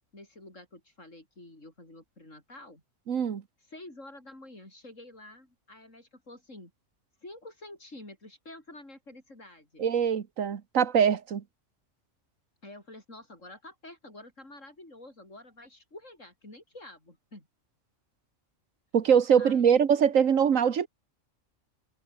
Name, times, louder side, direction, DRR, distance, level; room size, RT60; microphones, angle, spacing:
voice 1, 0.1-2.8 3.7-6.7 7.2-9.8 12.6-17.5 19.4-19.9, left 1 dB, 75° left, 7.4 m, -48 dB
voice 2, 3.1-3.4 9.8-11.4 18.9-20.9, right 7 dB, 90° right, 1.6 m, -23 dB
omnidirectional pair, 1.3 m